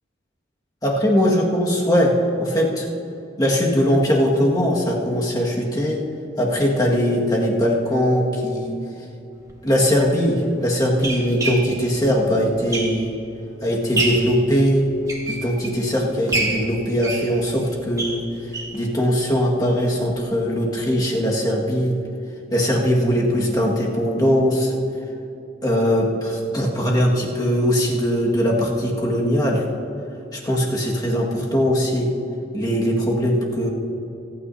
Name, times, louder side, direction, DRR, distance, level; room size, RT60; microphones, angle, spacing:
voice 1, 0.8-2.1 2.4-2.9 3.4-6.0 6.4-8.8 9.6-13.1 13.6-14.9 15.3-18.2 18.7-22.0 22.5-24.7 25.6-29.6 30.3-32.1 32.5-33.7, equal, 20° left, -3 dB, 1.7 m, -20 dB
sound 1, 9.4-9.5 10.3-13.3 13.7-14.4 14.9-15.9 16.3-18.8 19.2-19.3 19.6-19.7 20.0-20.1, right 2 dB, 20° right, 1.7 m, -28 dB
27.5 x 9.5 x 2.7 m, 2.8 s
head